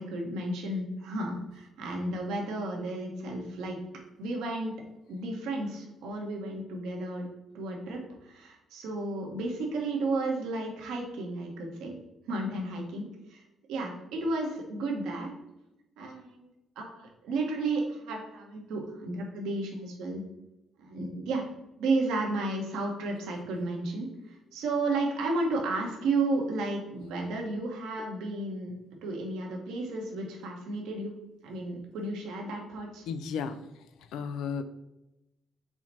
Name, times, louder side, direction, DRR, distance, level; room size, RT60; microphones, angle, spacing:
voice 1, 0.0-3.8 4.2-4.7 5.1-7.3 7.5-11.9 12.3-13.4 13.7-15.3 16.0-16.5 16.8-20.2 20.8-21.4 21.8-28.7 29.0-31.1 31.4-33.0, right 2 dB, 90° right, 0 dB, 0.9 m, -33 dB
voice 2, 33.1-33.6 34.1-34.6, left 6 dB, 85° left, 10 dB, 0.3 m, -33 dB
4.5 x 2.1 x 4.1 m, 0.93 s
cardioid pair, 90°, 0 cm